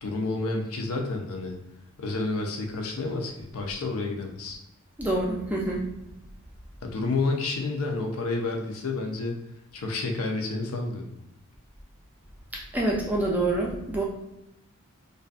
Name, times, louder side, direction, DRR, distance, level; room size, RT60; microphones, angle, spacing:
voice 1, 0.0-1.6 2.0-4.6 6.8-9.4 9.7-11.0, left 3 dB, 75° left, 2 dB, 0.5 m, -30 dB
voice 2, 5.0-5.8 12.7-14.0, right 2 dB, 5° right, -3 dB, 0.4 m, -26 dB
2.5 x 2.3 x 2.4 m, 0.86 s
head